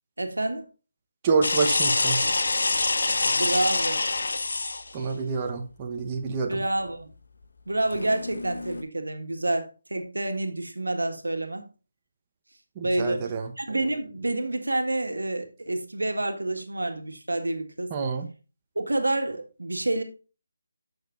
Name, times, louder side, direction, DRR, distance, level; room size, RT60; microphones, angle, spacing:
voice 1, 0.2-0.7 3.2-4.0 6.5-7.1 7.7-11.7 12.8-13.3 13.6-18.0 18.8-20.0, right 2 dB, 85° right, 1.7 m, -28 dB
voice 2, 1.2-2.2 4.9-6.6 12.8-13.5 17.9-18.3, right 5 dB, 25° right, 1.0 m, -27 dB
sound 1, 1.4-4.9 7.9-8.8, left 3 dB, 65° left, 1.2 m, -26 dB
11.5 x 6.6 x 2.5 m
figure-of-eight pair, 155°, 0 cm